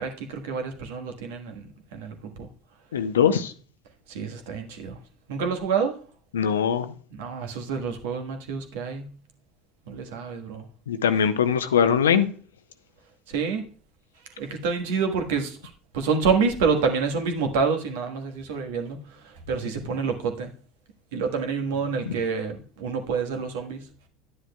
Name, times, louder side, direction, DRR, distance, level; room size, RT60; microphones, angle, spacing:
voice 1, 0.0-1.6 1.9-2.5 4.1-5.0 5.3-6.0 7.1-9.1 9.9-10.7 13.3-13.6 14.4-15.6 15.9-20.5 21.1-23.9, right 5 dB, 65° right, 1.4 m, -27 dB
voice 2, 2.9-3.5 6.3-6.9 10.9-12.3 22.1-22.2, left 8 dB, 75° left, 0.7 m, -21 dB
11.0 x 9.7 x 2.3 m
figure-of-eight pair, 70°, 0 cm